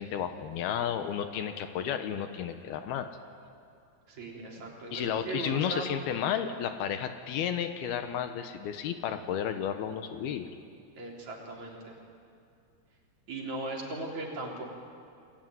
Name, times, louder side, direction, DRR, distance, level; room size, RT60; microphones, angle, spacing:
voice 1, 0.0-3.1 4.9-10.5, left 9 dB, 75° left, 8 dB, 2.9 m, -32 dB
voice 2, 4.1-5.9 11.0-12.0 13.3-14.6, right 2 dB, 45° right, -1 dB, 4.8 m, -38 dB
29.5 x 21.0 x 9.5 m, 2.4 s
omnidirectional pair, 4.7 m